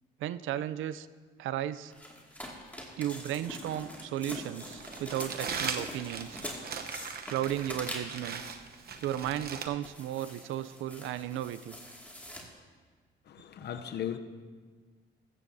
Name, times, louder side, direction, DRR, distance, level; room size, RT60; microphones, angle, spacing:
voice 1, 0.2-1.1 1.4-1.9 3.0-6.4 7.3-8.4 9.0-11.8, right 12 dB, 80° right, 0.5 m, -34 dB
sound 1, 1.9-8.3 8.9-9.5 9.8-12.4, left 1 dB, 10° left, 2.2 m, -44 dB
Crumpling crinkling, 4.6-9.7, right 6 dB, 50° right, 0.9 m, -39 dB
voice 2, 13.3-14.2, left 10 dB, 55° left, 0.7 m, -37 dB
15.0 x 14.0 x 2.7 m
cardioid pair, 90°, 20 cm